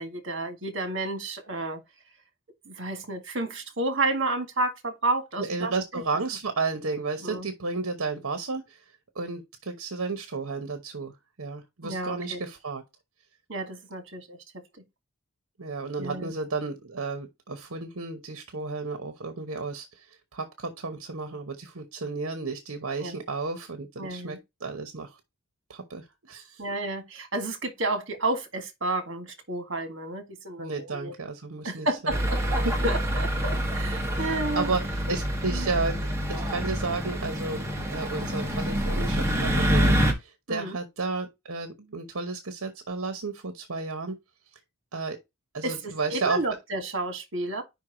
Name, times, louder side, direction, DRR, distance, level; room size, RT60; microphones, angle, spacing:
voice 1, 0.0-1.8 2.7-6.0 7.2-7.5 11.8-12.4 13.5-14.4 16.0-16.3 23.0-23.2 24.0-24.4 26.6-31.1 31.6-34.7 35.5-35.7 40.5-40.8 45.6-47.6, right 2 dB, 60° right, 1.9 m, -31 dB
voice 2, 5.4-8.8 9.1-11.1 11.4-12.8 15.6-25.2 25.7-26.6 30.6-32.2 32.6-32.8 34.1-36.0 36.3-37.6 37.9-44.2 44.9-45.2 45.5-46.4, right 3 dB, 80° right, 1.0 m, -32 dB
sound 1, 32.1-40.1, equal, 15° right, 1.5 m, -26 dB
5.3 x 4.6 x 5.0 m
head